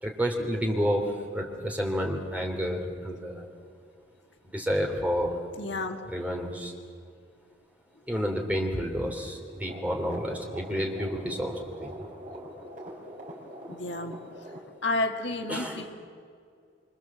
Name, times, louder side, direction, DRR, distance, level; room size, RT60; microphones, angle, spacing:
voice 1, 0.0-3.4 4.4-5.4 6.1-6.7 8.1-11.9 15.5-15.8, equal, 5° right, 1 dB, 3.5 m, -30 dB
voice 2, 5.6-6.0 13.7-14.1 14.8-15.9, left 2 dB, 60° left, 4 dB, 1.6 m, -30 dB
sound 1, 9.6-14.6, equal, 40° right, 5.1 m, -43 dB
26.0 x 25.5 x 7.6 m, 2.3 s
head